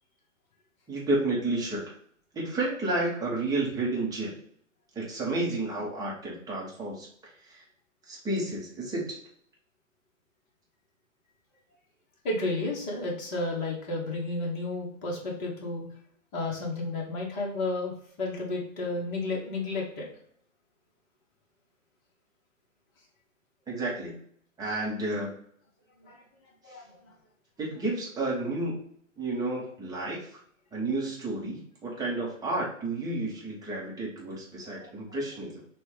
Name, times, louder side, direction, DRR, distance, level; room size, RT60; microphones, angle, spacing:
voice 1, 0.9-1.9 2.3-4.3 4.9-7.6 8.1-9.2 23.7-24.2 24.6-25.3 27.6-28.8 29.2-30.4 30.7-35.6, right 2 dB, 10° right, -4 dB, 1.1 m, -31 dB
voice 2, 12.2-15.8 16.3-17.9 18.2-20.1 26.0-26.2 26.6-26.9, left 2 dB, 25° left, -2 dB, 1.5 m, -32 dB
6.1 x 2.5 x 3.4 m, 0.65 s
figure-of-eight pair, 115°, 40 cm